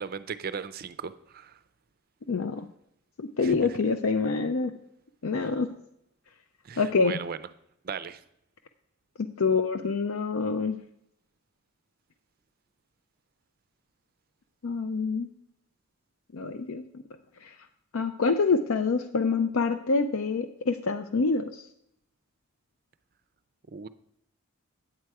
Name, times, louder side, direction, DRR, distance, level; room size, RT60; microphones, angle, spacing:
voice 1, 0.0-1.6 3.4-3.8 5.4-5.5 6.6-7.4 7.8-8.2 23.7-23.9, right 6 dB, 40° right, 15 dB, 0.4 m, -37 dB
voice 2, 2.3-2.6 3.2-4.7 5.2-5.7 6.8-7.2 9.4-10.8 14.6-15.3 16.3-17.0 17.4-17.5 17.9-21.6, left 4 dB, 70° left, 8 dB, 0.5 m, -26 dB
9.2 x 7.7 x 4.7 m, 0.75 s
head